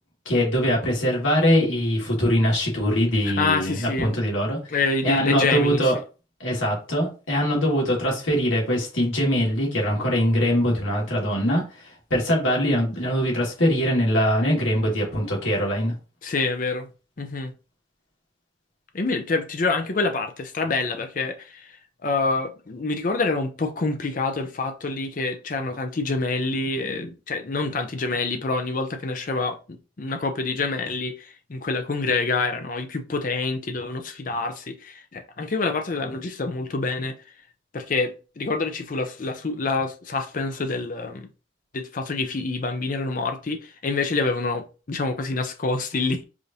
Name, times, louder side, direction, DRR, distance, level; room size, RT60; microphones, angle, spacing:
voice 1, 0.3-4.6 5.0-6.0 6.4-15.9, equal, 80° left, 1.8 m, -22 dB
voice 2, 3.2-4.1 4.7-5.8 16.2-16.9 17.2-17.5 18.9-21.8 22.0-37.2 37.7-41.3 41.7-46.2, left 3 dB, 40° left, 0.5 m, -27 dB
4.9 x 2.6 x 2.7 m
head